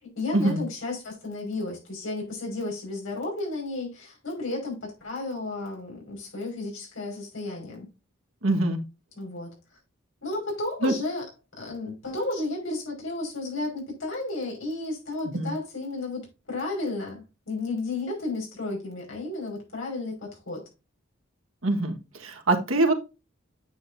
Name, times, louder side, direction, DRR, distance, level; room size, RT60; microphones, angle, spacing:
voice 1, 0.0-7.9 9.2-9.5 10.2-11.2 11.6-20.6, left 2 dB, 75° left, 5.4 m, -33 dB
voice 2, 8.4-8.8 10.8-10.9 15.3-15.5 21.6-22.9, right 2 dB, 85° right, 1.6 m, -24 dB
9.1 x 7.6 x 2.7 m
head